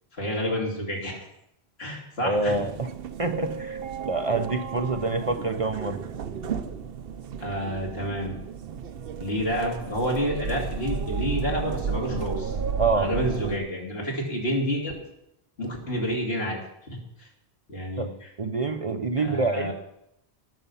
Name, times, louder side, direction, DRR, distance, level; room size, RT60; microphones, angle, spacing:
voice 1, 0.1-1.3 1.8-2.6 7.4-8.3 9.2-12.5 12.9-14.9 15.6-16.6 16.9-17.3 17.7-18.3 19.2-19.7, equal, 75° left, -1 dB, 3.2 m, -29 dB
voice 2, 2.2-2.9 3.2-3.8 4.0-6.0 12.8-13.1 18.0-18.1 18.4-19.7, right 3 dB, 40° right, 7 dB, 0.6 m, -26 dB
sound 1, 2.3-13.6, right 6 dB, 65° right, 0.9 m, -33 dB
18.5 x 6.7 x 5.6 m, 0.80 s
omnidirectional pair, 1.1 m